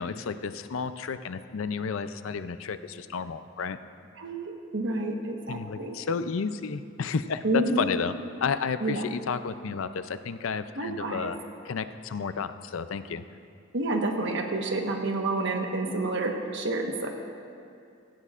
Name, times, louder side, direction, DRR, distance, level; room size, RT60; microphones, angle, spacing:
voice 1, 0.0-3.8 5.5-8.1 8.4-11.4 11.6-13.2, left 5 dB, 75° left, 11 dB, 0.5 m, -32 dB
voice 2, 4.2-6.0 7.4-7.9 8.8-9.1 10.8-11.3 13.7-17.1, right 2 dB, 60° right, 2 dB, 1.3 m, -29 dB
16.5 x 16.5 x 2.5 m, 2.5 s
head